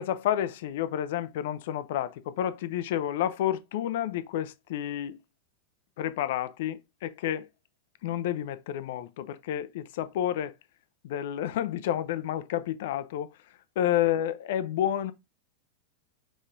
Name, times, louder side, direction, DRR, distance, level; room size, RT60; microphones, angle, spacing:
voice 1, 0.0-5.2 6.0-7.5 8.0-10.5 11.0-13.3 13.8-15.1, left 11 dB, 60° left, 0.6 m, -30 dB
4.9 x 4.1 x 2.6 m
figure-of-eight pair, 90°, 0 cm